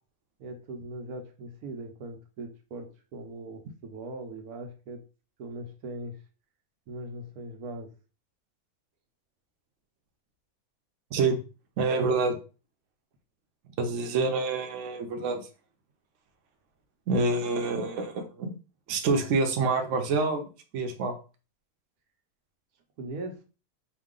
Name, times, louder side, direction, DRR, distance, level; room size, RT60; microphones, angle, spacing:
voice 1, 0.4-5.0 5.4-6.2 6.9-7.9 23.0-23.4, right 2 dB, 80° right, 3 dB, 1.3 m, -40 dB
voice 2, 11.8-12.4 13.8-15.5 17.1-18.6 18.9-20.4 20.7-21.2, right 3 dB, 60° right, 4 dB, 1.0 m, -27 dB
4.7 x 2.3 x 3.6 m, 0.34 s
omnidirectional pair, 1.6 m